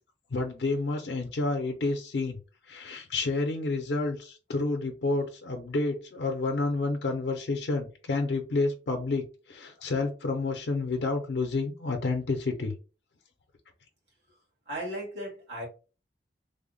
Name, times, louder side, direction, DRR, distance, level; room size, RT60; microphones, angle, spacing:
voice 1, 0.3-2.4 2.7-12.7, left 3 dB, 75° left, 0.5 m, -29 dB
voice 2, 14.7-15.7, right 1 dB, 80° right, 1.8 m, -36 dB
3.3 x 2.0 x 3.7 m
head